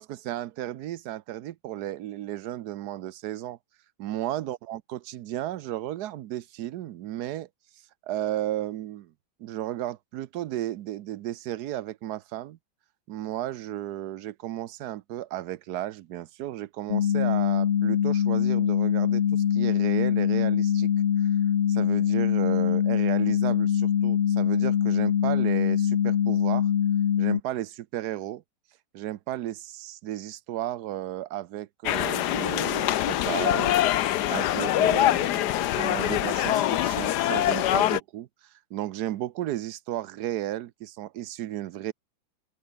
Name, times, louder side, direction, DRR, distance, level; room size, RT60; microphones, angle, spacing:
voice 1, 0.0-3.6 4.0-7.5 8.0-9.1 9.4-12.6 13.1-20.9 21.2-21.3 21.7-26.7 27.2-28.4 28.9-33.8 34.3-38.3 38.7-41.9, right 13 dB, 65° right, 1.0 m, -34 dB
sound 1, 16.9-27.4, left 9 dB, 90° left, 0.5 m, -23 dB
sound 2, 31.9-38.0, left 13 dB, 65° left, 1.2 m, -24 dB
open air
omnidirectional pair, 2.2 m